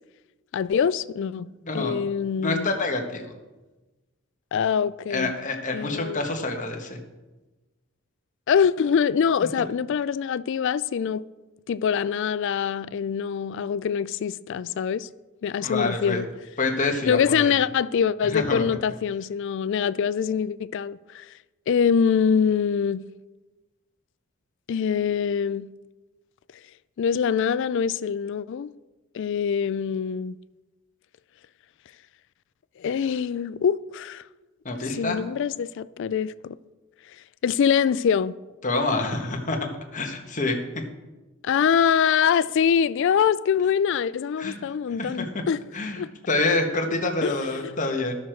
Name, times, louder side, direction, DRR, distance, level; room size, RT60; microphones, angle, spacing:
voice 1, 0.5-1.5 1.7-2.7 4.5-5.3 5.7-6.2 8.5-11.2 11.7-15.1 15.4-16.2 17.1-21.3 21.7-23.0 24.7-25.7 27.0-28.7 29.1-30.4 32.8-34.2 34.9-36.6 37.4-38.3 41.4-45.6 46.0-46.1 47.2-47.4 47.6-47.7, left 7 dB, 55° left, 0.3 m, -24 dB
voice 2, 1.7-2.0 2.4-3.3 5.1-7.0 15.6-16.2 16.6-17.6 18.3-18.8 34.6-35.2 38.6-39.6 39.9-40.8 44.4-44.6 45.0-45.4 45.7-48.2, left 2 dB, 35° left, 1.3 m, -27 dB
13.5 x 6.4 x 4.5 m
head